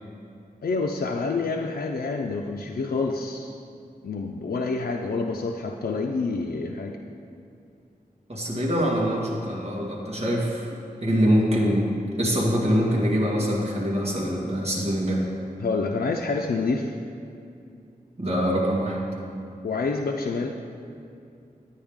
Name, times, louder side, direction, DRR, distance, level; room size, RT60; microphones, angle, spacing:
voice 1, 0.6-3.5 4.0-7.0 15.6-16.9 18.5-18.7 19.6-20.6, left 3 dB, 90° left, 1 dB, 0.5 m, -27 dB
voice 2, 8.3-10.7 11.0-15.2 18.2-19.0, equal, 40° right, -3 dB, 1.8 m, -24 dB
10.0 x 9.7 x 3.6 m, 2.5 s
wide cardioid pair, 65°, 16 cm